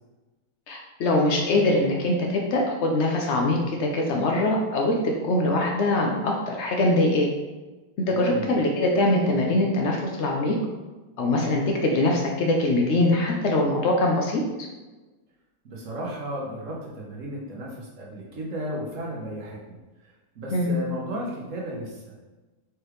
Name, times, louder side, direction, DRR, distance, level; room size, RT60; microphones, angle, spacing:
voice 1, 0.7-7.3 8.1-10.5 11.2-14.4 20.5-20.7, left 2 dB, 85° left, 0 dB, 0.6 m, -23 dB
voice 2, 8.1-8.5 15.6-22.1, equal, 55° right, -3 dB, 1.0 m, -34 dB
4.7 x 3.2 x 3.1 m, 1.2 s
omnidirectional pair, 1.9 m